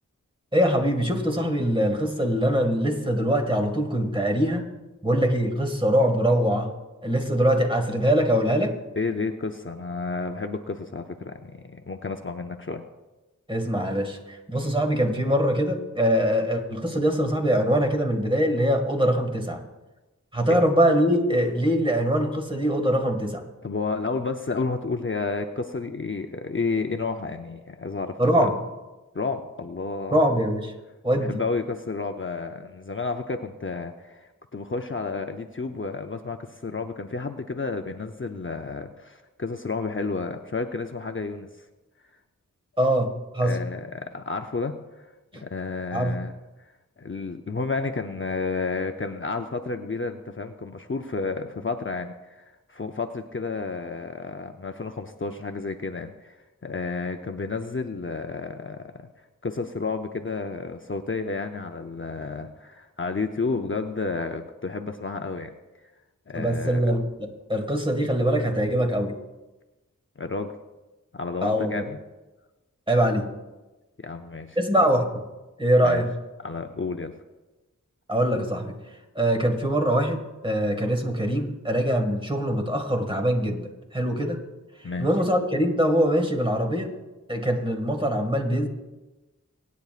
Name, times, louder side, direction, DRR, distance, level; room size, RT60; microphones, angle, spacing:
voice 1, 0.5-4.7 5.0-6.7 7.0-8.8 13.5-19.6 20.3-23.4 28.2-28.6 30.1-30.7 31.0-31.4 42.8-43.6 45.3-45.4 45.9-46.2 66.3-69.2 71.4-71.9 72.9-73.3 74.6-75.2 75.6-76.1 78.1-78.8 79.2-84.4 85.0-86.9 87.3-88.7, equal, 15° right, 3 dB, 2.0 m, -23 dB
voice 2, 9.0-12.8 20.5-20.6 23.6-28.5 29.1-30.2 31.2-41.5 43.4-44.7 45.4-46.4 47.0-52.4 52.7-59.1 59.4-65.5 66.3-66.8 70.2-70.5 71.1-72.0 74.0-74.9 75.8-76.0 76.4-77.1 84.8-85.1, left 4 dB, 40° left, 5 dB, 0.7 m, -31 dB
24.0 x 9.4 x 2.5 m, 1.1 s
wide cardioid pair, 45°, 32 cm